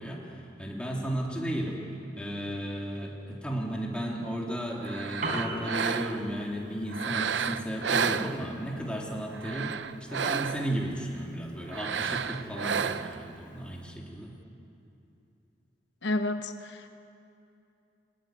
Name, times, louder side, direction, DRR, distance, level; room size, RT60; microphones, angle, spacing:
voice 1, 0.0-1.8 2.2-9.8 10.1-14.3, equal, 5° left, -2 dB, 3.2 m, -34 dB
sound 1, 4.8-6.3 6.9-8.8 9.3-10.8 11.7-13.3, right 6 dB, 85° right, 0.7 m, -31 dB
Piano, 5.0-13.9, right 2 dB, 50° right, 4.2 m, -44 dB
voice 2, 16.0-16.9, left 2 dB, 75° left, 8 dB, 0.9 m, -30 dB
20.5 x 20.0 x 9.2 m, 2.7 s
head